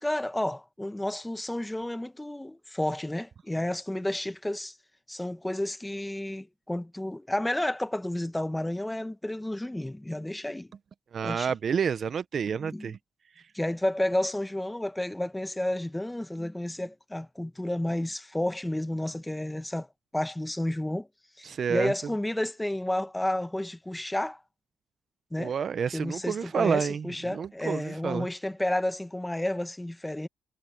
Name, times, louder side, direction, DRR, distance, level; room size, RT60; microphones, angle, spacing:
voice 1, 0.0-4.7 5.1-10.7 11.2-11.5 12.6-12.9 13.5-19.9 20.1-21.1 21.4-24.4 25.3-25.5 25.9-30.3, left 1 dB, 10° left, 1.3 m, -31 dB
voice 2, 11.1-13.0 21.4-21.9 25.4-28.3, right 7 dB, 50° right, 0.8 m, -29 dB
cardioid pair, 90°, 0 cm